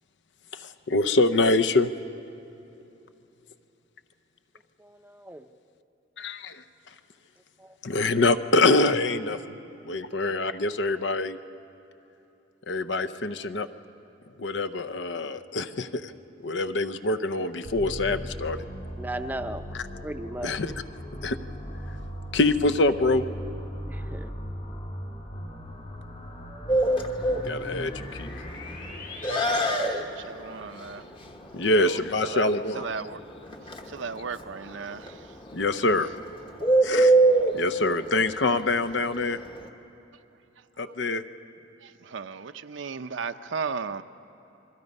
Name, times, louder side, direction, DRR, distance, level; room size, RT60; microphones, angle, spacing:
voice 1, 0.5-1.9 6.2-6.6 7.8-9.4 9.8-11.4 12.7-13.7 14.4-16.1 16.4-18.6 20.4-20.7 21.2-21.4 22.3-23.2 27.4-28.3 31.5-32.9 35.5-36.1 36.8-37.1 37.5-39.4 40.8-41.2, left 2 dB, 65° left, 11 dB, 0.7 m, -25 dB
voice 2, 4.8-5.5 7.6-7.8 19.0-19.7 20.0-20.5 23.9-24.3, right 1 dB, 10° right, 8 dB, 0.6 m, -36 dB
sound 1, 17.6-29.6, equal, 45° left, 2.9 m, -38 dB
Bird, 26.7-39.7, right 2 dB, 25° left, 1.2 m, -26 dB
voice 3, 29.6-31.1 31.7-33.2 33.9-35.4 40.8-41.0 41.8-44.0, right 5 dB, 75° right, 10 dB, 0.6 m, -36 dB
28.5 x 22.0 x 5.4 m, 3.0 s
head